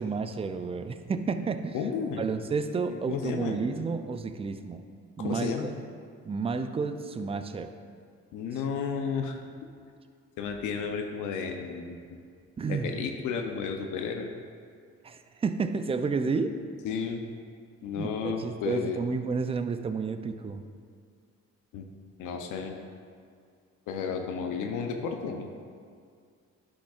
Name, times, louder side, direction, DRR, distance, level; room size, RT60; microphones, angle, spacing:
voice 1, 0.0-1.8 2.2-4.8 5.2-5.7 6.3-7.7 12.6-13.0 15.0-16.6 18.0-20.6, right 4 dB, 20° right, 9 dB, 0.3 m, -31 dB
voice 2, 1.7-2.2 2.9-3.6 5.2-5.8 8.3-9.4 10.4-12.2 12.7-14.3 16.8-17.2 17.8-19.0 21.7-21.8 22.2-22.7 23.9-25.5, left 6 dB, 85° left, 4 dB, 0.6 m, -32 dB
10.0 x 5.1 x 2.4 m, 2.2 s
cardioid pair, 90°, 30 cm